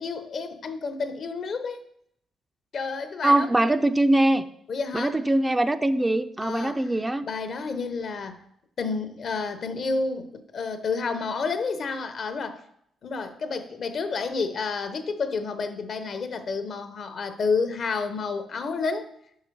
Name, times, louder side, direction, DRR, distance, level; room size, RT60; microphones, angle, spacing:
voice 1, 0.0-1.8 2.7-3.8 4.7-5.2 6.4-6.9 7.2-8.4 8.8-12.6 13.0-19.1, left 4 dB, 55° left, 0.7 m, -30 dB
voice 2, 3.2-4.5 4.9-7.2, right 1 dB, 20° right, 0.4 m, -22 dB
4.9 x 4.8 x 4.5 m
hypercardioid pair, 50°, 0 cm